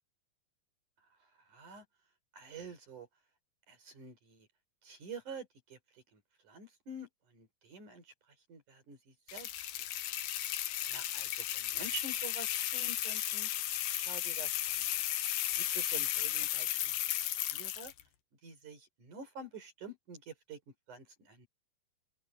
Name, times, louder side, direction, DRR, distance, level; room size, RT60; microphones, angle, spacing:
voice 1, 1.5-1.8 2.3-3.1 3.7-4.5 4.8-8.1 8.5-9.5 9.8-9.9 10.9-13.5 13.9-14.9 15.5-17.9 18.4-20.6 20.9-21.5, right 4 dB, 65° right, 6.0 m, -48 dB
sound 1, 9.3-18.0, left 13 dB, 85° left, 2.9 m, -34 dB
open air
omnidirectional pair, 3.9 m